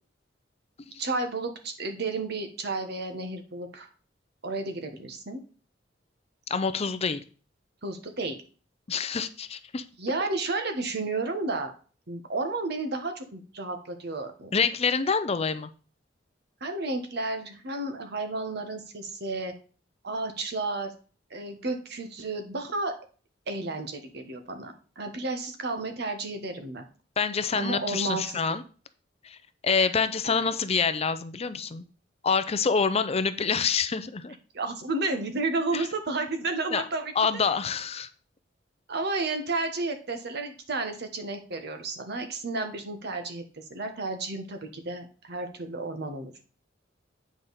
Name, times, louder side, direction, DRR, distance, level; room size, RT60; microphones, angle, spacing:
voice 1, 1.0-3.9 4.4-5.4 7.8-8.4 10.0-11.7 12.1-14.5 16.6-19.5 20.0-20.9 21.3-22.9 23.5-26.8 27.5-28.2 34.5-37.1 38.9-46.3, right 3 dB, 60° right, 6 dB, 1.4 m, -32 dB
voice 2, 6.5-7.2 8.9-9.8 14.5-15.7 27.2-28.6 29.2-29.4 29.6-31.8 32.2-34.4 35.7-35.9 36.7-36.8 37.2-38.1, left 5 dB, 35° left, 12 dB, 0.5 m, -26 dB
8.7 x 5.2 x 4.2 m, 0.38 s
head